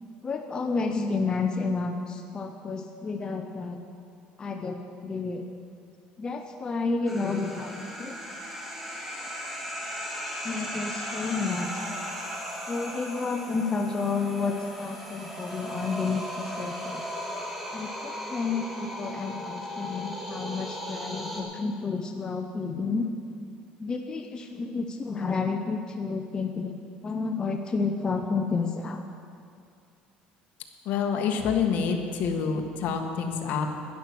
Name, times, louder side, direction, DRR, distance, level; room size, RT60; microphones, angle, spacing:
voice 1, 0.2-3.8 4.4-5.5 6.2-8.2 10.4-11.9 12.7-17.0 17.7-23.1 23.8-29.0, left 4 dB, 25° left, 4 dB, 0.7 m, -30 dB
sound 1, 7.1-21.4, equal, 5° right, 1.9 m, -37 dB
voice 2, 30.8-33.7, left 6 dB, 60° left, 4 dB, 1.4 m, -27 dB
11.5 x 11.0 x 6.1 m, 2.4 s
cardioid pair, 125°, 3 cm